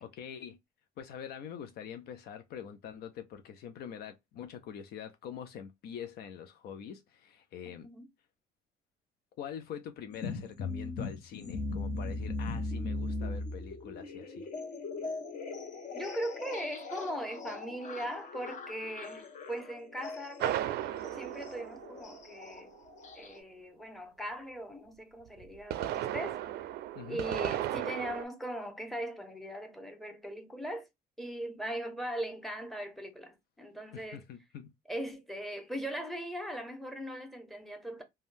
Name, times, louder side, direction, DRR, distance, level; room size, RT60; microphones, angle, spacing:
voice 1, 0.0-0.6 1.0-7.9 9.4-14.5 27.0-27.2 33.9-34.7, left 8 dB, 70° left, 0.5 m, -44 dB
voice 2, 7.7-8.1 15.9-20.7 21.1-22.7 23.1-26.4 27.1-30.9 31.2-34.2 34.9-38.0, equal, ahead, 0.8 m, -39 dB
sound 1, 10.1-23.4, left 3 dB, 45° left, 0.9 m, -39 dB
sound 2, 20.4-22.5 25.4-28.2, right 13 dB, 75° right, 0.4 m, -35 dB
3.4 x 2.2 x 2.6 m
cardioid pair, 110°, 17 cm